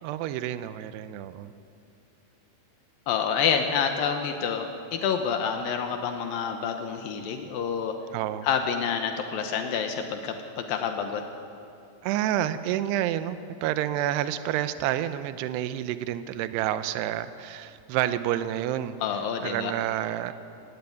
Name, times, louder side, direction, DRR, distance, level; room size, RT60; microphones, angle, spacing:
voice 1, 0.0-1.5 8.1-8.5 12.0-19.0 19.4-20.3, right 12 dB, 80° right, 12 dB, 2.4 m, -29 dB
voice 2, 3.1-8.0 8.4-11.2 19.0-19.7, left 7 dB, 80° left, 5 dB, 2.1 m, -28 dB
17.5 x 15.5 x 9.4 m, 2.6 s
omnidirectional pair, 5.5 m